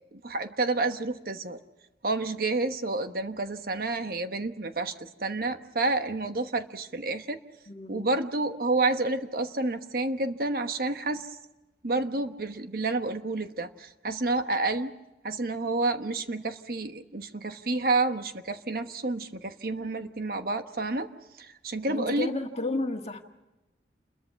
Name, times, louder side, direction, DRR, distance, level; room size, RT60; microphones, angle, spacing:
voice 1, 0.1-1.6 2.0-7.4 7.9-11.3 11.8-14.9 15.2-21.1 21.4-22.3, right 2 dB, 55° right, 8 dB, 1.2 m, -29 dB
voice 2, 7.7-8.1 21.9-23.2, left 2 dB, 35° left, 4 dB, 1.8 m, -32 dB
29.0 x 22.0 x 5.9 m, 1.0 s
head